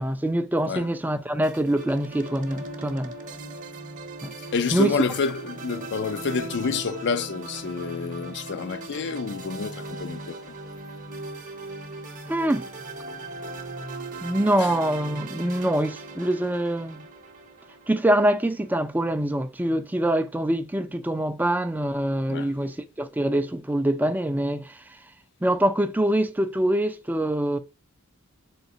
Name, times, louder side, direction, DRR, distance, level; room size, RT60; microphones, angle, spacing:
voice 1, 0.0-3.2 4.2-4.3 4.7-5.0 12.3-12.7 14.2-17.1 17.9-25.0 25.4-27.6, right 1 dB, 10° right, 0.3 m, -24 dB
sound 1, 1.4-18.8, right 2 dB, 35° right, 0.7 m, -39 dB
voice 2, 4.5-10.6 22.3-22.5, left 5 dB, 55° left, 0.4 m, -28 dB
3.8 x 3.2 x 2.6 m
head